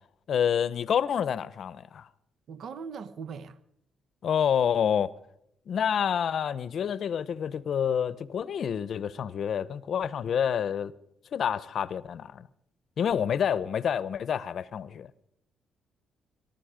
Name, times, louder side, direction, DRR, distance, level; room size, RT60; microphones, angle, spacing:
voice 1, 0.3-2.1 4.2-5.1 5.7-10.9 11.3-12.5 13.0-15.1, left 8 dB, 60° left, 0.7 m, -28 dB
voice 2, 2.5-3.6, right 6 dB, 65° right, 0.8 m, -40 dB
22.5 x 12.0 x 5.0 m
cardioid pair, 90°, 0 cm